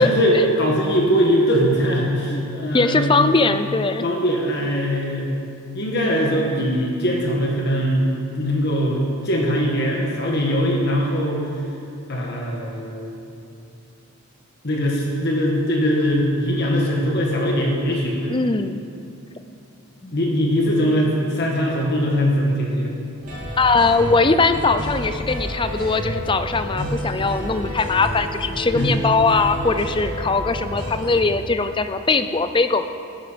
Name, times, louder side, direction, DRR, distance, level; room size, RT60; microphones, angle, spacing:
voice 1, 0.0-3.3 4.0-5.3 5.7-8.0 8.4-11.5 12.1-13.1 14.6-18.3 20.1-22.9 26.8-26.9 28.7-29.0, equal, 50° left, -1 dB, 1.7 m, -21 dB
voice 2, 2.7-4.0 18.3-18.8 20.0-20.2 23.6-32.8, left 3 dB, 20° left, 10 dB, 0.5 m, -20 dB
sound 1, 23.2-31.1, equal, 40° right, 3.2 m, -30 dB
17.5 x 9.8 x 5.2 m, 2.6 s
head